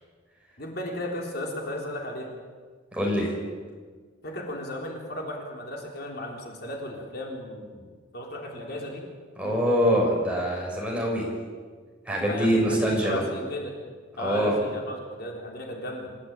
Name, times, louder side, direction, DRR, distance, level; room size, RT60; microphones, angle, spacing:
voice 1, 0.6-2.3 4.2-7.9 8.1-9.0 12.2-13.8 14.2-16.1, left 1 dB, 55° left, 0 dB, 4.1 m, -35 dB
voice 2, 2.9-3.4 9.4-11.3 12.0-13.2 14.2-14.6, equal, 5° right, -2 dB, 6.7 m, -24 dB
28.0 x 15.5 x 9.1 m, 1.5 s
head